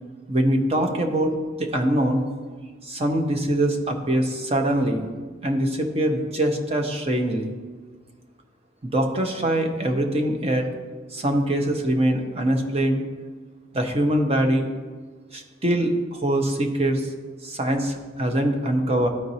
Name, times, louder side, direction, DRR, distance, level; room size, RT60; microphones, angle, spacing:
voice 1, 0.3-2.2 2.8-5.1 5.4-7.5 8.8-10.7 11.1-13.0 13.7-14.7 15.3-17.1 17.4-19.1, right 1 dB, 30° right, 4 dB, 0.8 m, -23 dB
13.0 x 4.6 x 2.8 m, 1.5 s
head